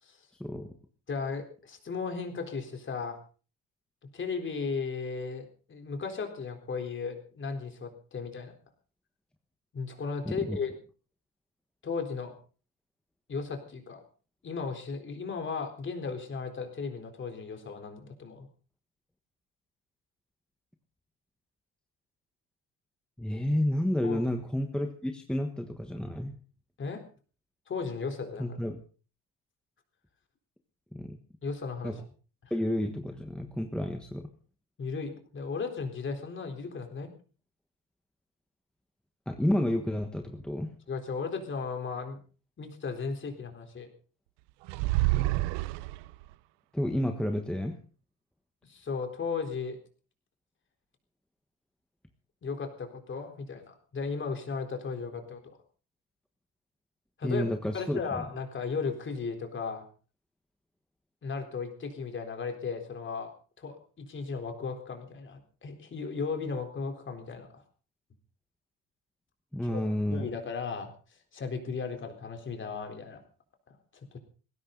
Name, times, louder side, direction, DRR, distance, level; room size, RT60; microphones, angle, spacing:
voice 1, 0.4-0.7 10.2-10.6 23.2-26.3 28.4-28.8 30.9-31.2 31.8-31.9 32.5-34.3 39.3-40.7 46.7-47.8 57.2-58.3 69.5-70.3, left 1 dB, ahead, 4 dB, 1.3 m, -30 dB
voice 2, 1.1-3.2 4.1-8.5 9.7-10.8 11.8-12.3 13.3-14.0 14.4-18.5 24.0-24.3 26.8-27.0 27.7-28.6 31.4-31.9 32.4-32.5 34.8-37.1 40.9-42.2 42.6-43.9 48.6-49.8 52.4-55.6 57.2-57.4 57.7-59.8 61.2-63.3 63.6-67.6 69.6-69.8 70.1-73.2 73.7-73.8, left 5 dB, 30° left, 5 dB, 3.9 m, -36 dB
sound 1, 44.7-46.3, right 18 dB, 80° right, 0.8 m, -28 dB
20.0 x 16.5 x 3.9 m, 0.39 s
cardioid pair, 145°, 42 cm